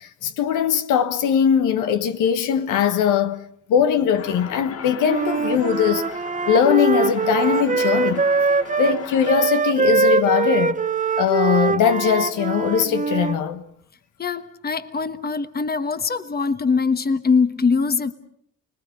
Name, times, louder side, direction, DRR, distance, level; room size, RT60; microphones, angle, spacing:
voice 1, 0.0-3.4 3.7-6.0 6.5-8.2 8.8-10.8 11.2-13.6, left 8 dB, 85° left, 1.3 m, -20 dB
sound 1, 4.2-9.3, left 7 dB, 50° left, 1.5 m, -37 dB
Wind instrument woodwind instrument, 5.0-13.4, right 5 dB, 25° right, 0.9 m, -22 dB
voice 2, 14.2-18.1, left 5 dB, 30° left, 1.3 m, -22 dB
29.5 x 20.0 x 6.7 m
cardioid pair, 90°, 30 cm